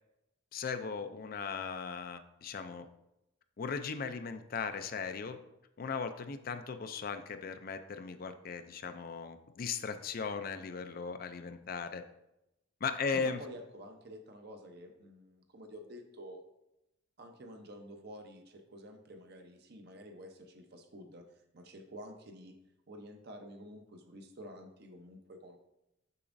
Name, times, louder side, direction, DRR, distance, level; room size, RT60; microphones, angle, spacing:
voice 1, 0.5-2.9 3.6-5.4 5.8-12.0 12.8-13.4, left 5 dB, 50° left, 9 dB, 0.4 m, -37 dB
voice 2, 13.1-16.4 17.2-21.2 21.5-22.6 22.9-25.6, equal, 55° right, 4 dB, 0.8 m, -49 dB
6.9 x 6.0 x 2.6 m, 0.87 s
head